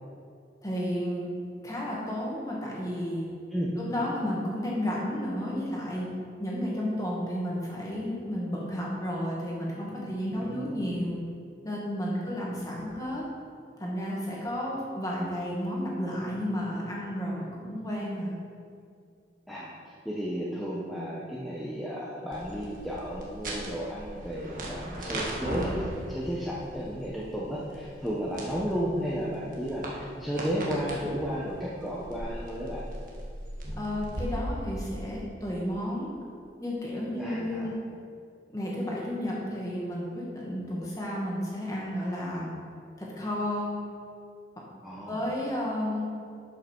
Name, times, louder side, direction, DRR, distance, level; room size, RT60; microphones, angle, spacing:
voice 1, 0.6-1.2 1.6-3.3 3.8-6.1 6.4-11.2 11.6-13.2 13.8-18.3 33.8-36.1 36.6-37.7 38.5-42.6 43.0-43.8 45.1-46.1, equal, 20° left, -4 dB, 1.8 m, -32 dB
voice 2, 10.4-10.9 19.5-32.9 37.2-37.7 44.8-45.2, equal, ahead, -7 dB, 0.9 m, -33 dB
sound 1, 22.3-34.2, right 1 dB, 45° right, 1.6 m, -39 dB
12.0 x 5.7 x 4.6 m, 2.3 s
head